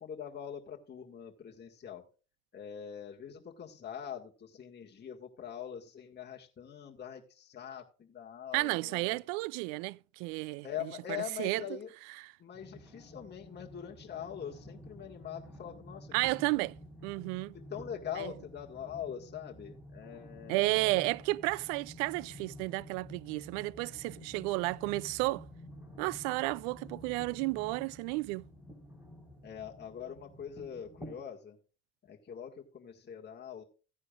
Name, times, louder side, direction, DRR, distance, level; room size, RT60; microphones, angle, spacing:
voice 1, 0.0-2.0 2.5-9.2 10.6-11.9 12.4-16.1 17.5-20.8 29.4-31.6 32.0-33.6, left 9 dB, 25° left, 1.8 m, -43 dB
voice 2, 8.5-11.8 12.2-12.3 16.1-16.8 17.0-17.5 18.2-18.3 20.5-25.5 26.0-28.5, right 22 dB, 65° right, 0.5 m, -32 dB
sound 1, 12.5-31.2, equal, 5° right, 4.0 m, -51 dB
15.5 x 9.6 x 2.4 m
hypercardioid pair, 85°, 38 cm